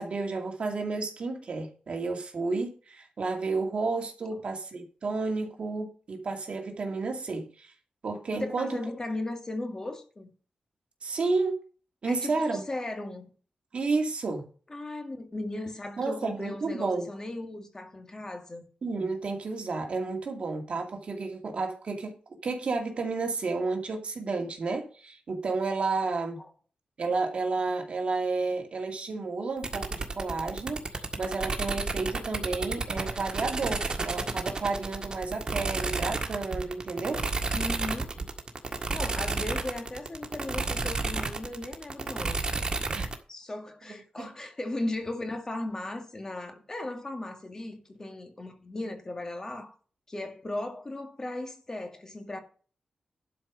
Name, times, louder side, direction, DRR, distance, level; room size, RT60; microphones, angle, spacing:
voice 1, 0.0-7.7 8.0-8.8 11.0-11.6 12.0-12.7 13.7-14.5 16.0-17.1 18.8-22.1 22.4-26.4 27.0-37.2 43.0-43.1 44.2-44.3, right 3 dB, 55° right, 2.4 m, -31 dB
voice 2, 8.3-10.3 12.0-13.3 14.7-18.6 26.4-26.5 37.5-38.2 38.9-42.5 43.3-49.7 50.1-52.4, left 2 dB, 25° left, 1.9 m, -37 dB
sound 1, 29.6-43.2, right 3 dB, 35° right, 1.7 m, -32 dB
12.0 x 5.2 x 6.2 m
wide cardioid pair, 140°, 2 cm